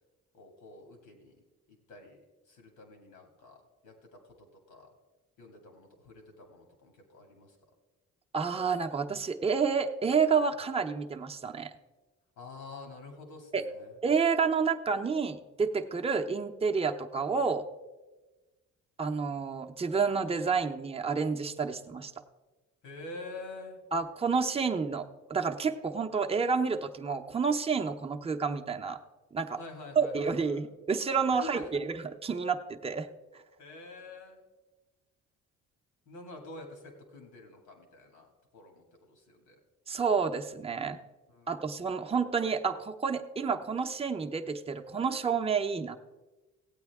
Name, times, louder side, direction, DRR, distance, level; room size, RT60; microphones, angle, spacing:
voice 1, 0.3-1.4 1.9-2.2 2.5-4.9 5.4-7.6 12.4-13.9 22.8-23.8 29.6-30.6 31.3-31.7 33.6-34.4 36.1-39.6 41.3-41.6, left 3 dB, 85° left, 3 dB, 2.2 m, -47 dB
voice 2, 8.3-11.7 13.5-13.6 14.0-17.6 19.0-22.1 23.9-29.0 29.3-29.6 30.0-33.1 39.9-41.0 41.5-46.0, right 5 dB, 20° right, 4 dB, 0.7 m, -29 dB
16.0 x 8.7 x 3.5 m, 1.2 s
cardioid pair, 90°, 30 cm